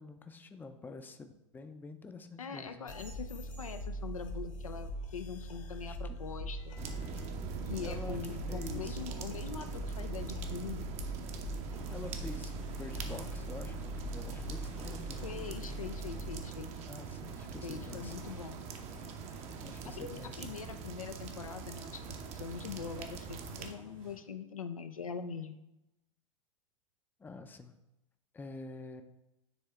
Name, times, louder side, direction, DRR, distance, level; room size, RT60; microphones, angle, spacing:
voice 1, 0.0-2.9 5.9-6.1 7.8-9.0 11.9-15.7 16.9-18.3 19.6-20.6 27.2-27.7 28.3-29.0, left 3 dB, 10° left, 8 dB, 0.5 m, -47 dB
voice 2, 2.4-6.8 7.7-10.9 15.2-16.7 17.6-18.6 19.8-25.6, left 6 dB, 85° left, 8 dB, 0.5 m, -43 dB
sound 1, 2.9-16.4, right 1 dB, 65° left, 1.5 m, -41 dB
sound 2, 6.8-23.7, right 6 dB, 40° right, 0.8 m, -43 dB
sound 3, 11.7-24.2, right 2 dB, 70° right, 2.1 m, -56 dB
9.7 x 3.6 x 3.4 m, 0.92 s
figure-of-eight pair, 90°, 17 cm